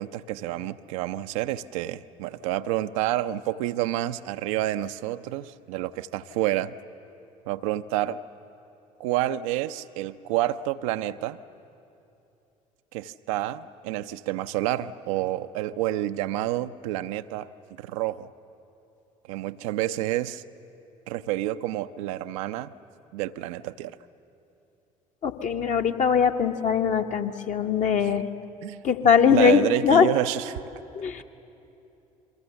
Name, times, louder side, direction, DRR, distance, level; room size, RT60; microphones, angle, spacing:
voice 1, 0.0-6.7 7.5-8.2 9.0-11.4 12.9-17.5 17.8-18.3 19.3-20.4 21.1-22.7 23.1-24.0 28.0-28.1 28.6-28.8 29.3-30.6, right 14 dB, 65° right, 10 dB, 0.6 m, -29 dB
voice 2, 25.2-28.3 28.8-30.1 30.9-31.2, left 7 dB, 40° left, 5 dB, 1.3 m, -21 dB
29.5 x 23.0 x 7.0 m, 2.8 s
figure-of-eight pair, 55°, 18 cm